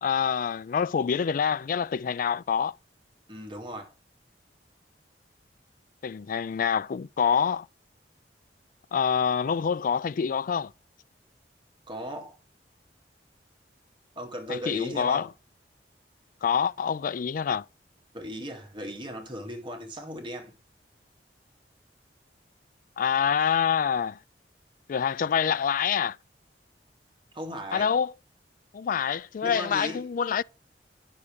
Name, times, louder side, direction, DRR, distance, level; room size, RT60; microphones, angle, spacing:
voice 1, 0.0-2.8 6.0-7.7 8.9-10.7 14.5-15.3 16.4-17.6 23.0-24.2 24.9-26.2 27.7-28.1 28.7-30.4, left 7 dB, 50° left, 0.3 m, -26 dB
voice 2, 3.3-3.9 11.9-12.4 14.2-15.3 18.1-20.6 27.3-27.9 29.4-30.0, equal, 30° right, 2.1 m, -37 dB
9.7 x 6.7 x 3.3 m
head